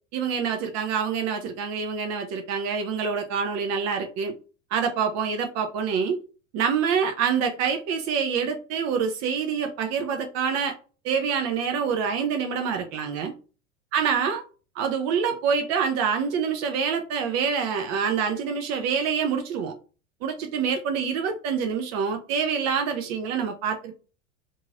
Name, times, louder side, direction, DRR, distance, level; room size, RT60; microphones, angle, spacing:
voice 1, 0.1-4.3 4.7-6.2 6.5-10.8 11.0-13.3 13.9-14.4 14.8-19.7 20.2-24.0, right 6 dB, 45° right, 0.5 m, -26 dB
3.0 x 2.6 x 2.4 m
hypercardioid pair, 85°, 39 cm